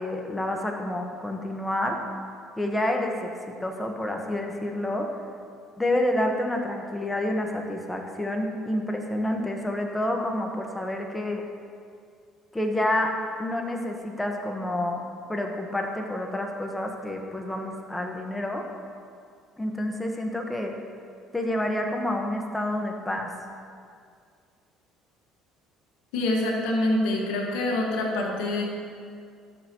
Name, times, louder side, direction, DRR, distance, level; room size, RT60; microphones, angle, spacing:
voice 1, 0.0-2.0 2.6-5.1 5.8-11.4 12.5-15.0 15.3-18.6 19.6-20.7 21.3-23.3, left 1 dB, 10° left, 2 dB, 1.4 m, -28 dB
voice 2, 26.1-28.7, left 1 dB, 80° left, -1 dB, 1.9 m, -25 dB
17.5 x 6.9 x 3.1 m, 2.2 s
supercardioid pair, 75°, 0 cm